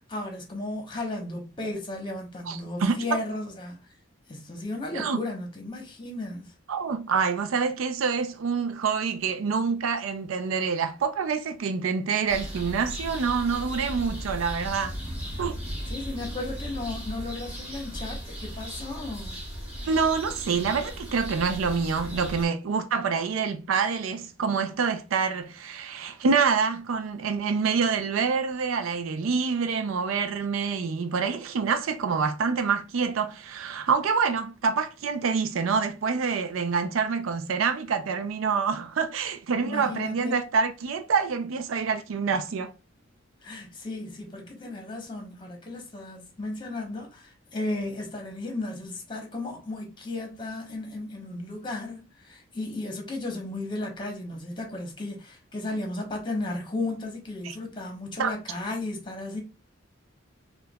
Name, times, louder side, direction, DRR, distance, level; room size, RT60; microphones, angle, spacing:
voice 1, 0.0-3.8 4.3-6.5 15.9-19.4 39.6-40.4 43.4-59.4, left 2 dB, 25° left, 0.9 m, -34 dB
voice 2, 2.5-3.0 4.9-5.2 6.7-15.0 15.4-15.6 19.9-42.7 57.4-57.6 58.2-58.3, right 5 dB, 90° right, 0.4 m, -26 dB
sound 1, 12.3-22.4, equal, 5° right, 1.4 m, -36 dB
4.5 x 2.3 x 2.2 m
head